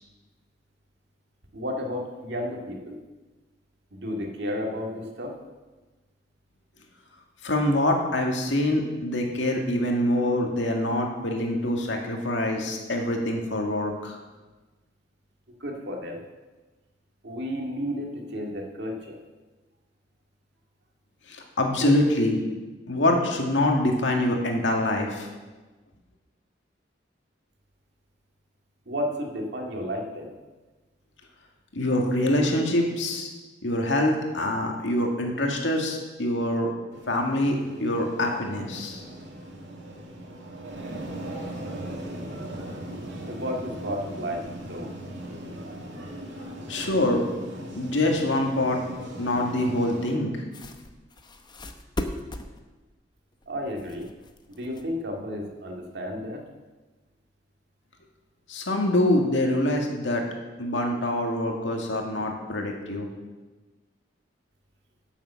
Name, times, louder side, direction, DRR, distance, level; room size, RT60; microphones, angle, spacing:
voice 1, 1.5-3.0 3.9-5.3 15.6-16.2 17.2-19.2 28.9-30.3 43.2-44.9 53.5-54.1 54.5-56.4, equal, 65° right, 1 dB, 2.1 m, -32 dB
voice 2, 7.4-14.2 21.3-22.4 22.9-25.3 31.7-33.3 33.6-36.7 37.1-39.0 46.7-47.3 47.7-48.8 49.2-50.3 58.5-60.2 60.6-63.1, left 1 dB, 85° left, 1 dB, 2.0 m, -25 dB
sound 1, 36.9-50.2, right 1 dB, 90° right, 2.2 m, -39 dB
sound 2, 50.5-52.6 53.3-55.2, left 1 dB, 25° left, 0.8 m, -37 dB
11.0 x 7.3 x 7.2 m, 1.2 s
head